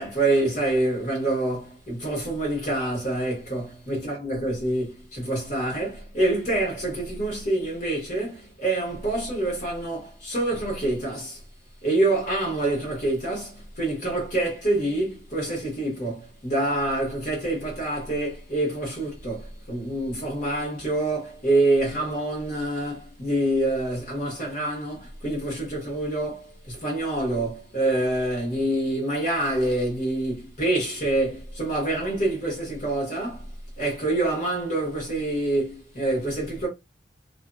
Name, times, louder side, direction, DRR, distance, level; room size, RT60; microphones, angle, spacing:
voice 1, 0.0-11.4 11.8-33.5 33.8-36.7, right 2 dB, 45° left, 1.5 m, -26 dB
2.7 x 2.6 x 2.3 m
head